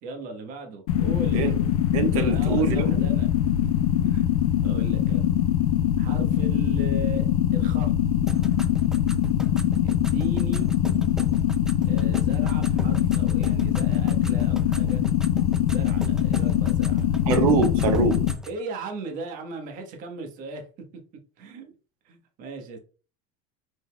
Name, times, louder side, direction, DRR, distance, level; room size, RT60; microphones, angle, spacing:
voice 1, 0.0-1.4 2.3-3.7 4.0-4.3 4.6-5.3 6.0-7.3 7.5-8.0 9.8-10.7 11.8-15.0 15.6-17.1 18.4-21.0 21.4-21.7 22.0-22.8, right 3 dB, 50° right, 1.2 m, -37 dB
sound 1, 0.9-18.3, left 11 dB, 80° left, 0.6 m, -23 dB
voice 2, 1.9-3.0 17.3-18.2, right 5 dB, 85° right, 1.2 m, -24 dB
sound 2, 8.3-18.6, right 1 dB, 5° right, 0.4 m, -40 dB
5.1 x 4.0 x 2.3 m
supercardioid pair, 120°, 18 cm